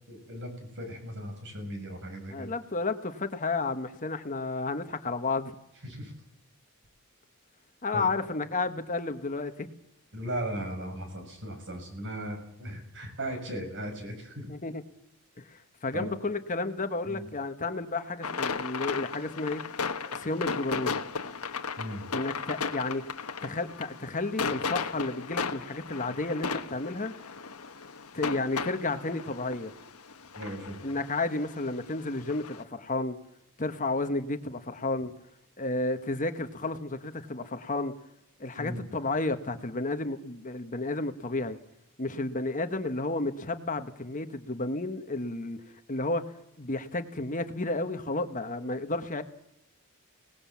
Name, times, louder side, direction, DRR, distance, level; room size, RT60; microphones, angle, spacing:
voice 1, 0.1-2.5 5.8-6.1 7.9-8.0 10.1-14.5 15.9-16.1 17.0-17.3 21.8-22.1 30.3-30.8 38.6-38.8, right 1 dB, 55° right, 6.8 m, -37 dB
voice 2, 2.3-5.5 7.8-9.7 14.5-14.8 15.4-19.6 20.1-21.0 22.1-23.0 23.4-27.1 28.1-29.7 30.8-33.2 33.6-35.1 35.6-37.9 38.4-41.6 42.0-45.6 45.9-46.2 46.6-49.2, left 2 dB, 35° left, 1.3 m, -32 dB
sound 1, 18.2-32.6, left 5 dB, 80° left, 1.4 m, -35 dB
25.0 x 19.0 x 7.4 m
head